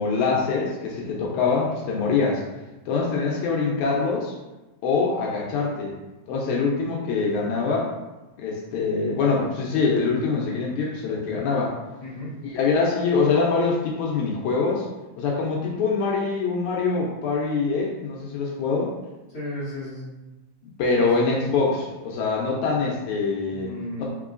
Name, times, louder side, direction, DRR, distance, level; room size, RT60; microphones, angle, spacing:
voice 1, 0.0-2.4 2.9-4.3 4.8-6.0 6.3-7.9 8.4-11.7 12.4-14.9 15.2-18.9 20.8-24.0, left 4 dB, 75° left, -2 dB, 1.8 m, -24 dB
voice 2, 12.0-12.3 19.3-20.1 21.0-21.1 23.5-24.0, left 1 dB, 55° left, -10 dB, 1.1 m, -34 dB
4.6 x 3.6 x 2.4 m, 1.1 s
omnidirectional pair, 3.8 m